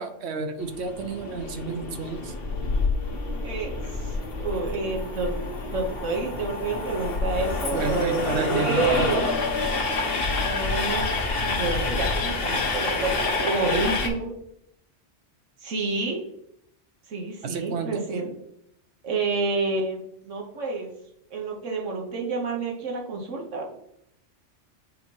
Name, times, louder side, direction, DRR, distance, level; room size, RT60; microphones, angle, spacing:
voice 1, 0.0-2.3 7.7-9.1 17.4-18.0, right 4 dB, 65° right, 8 dB, 1.0 m, -31 dB
Train, 0.6-14.1, left 3 dB, 55° left, 1.2 m, -28 dB
voice 2, 3.4-5.3 5.7-9.3 10.4-11.1 11.4-14.3 15.6-16.2 17.1-18.3 19.0-20.9 21.3-23.6, right 3 dB, 85° right, 0 dB, 1.3 m, -29 dB
8.1 x 2.8 x 4.5 m, 0.76 s
omnidirectional pair, 1.2 m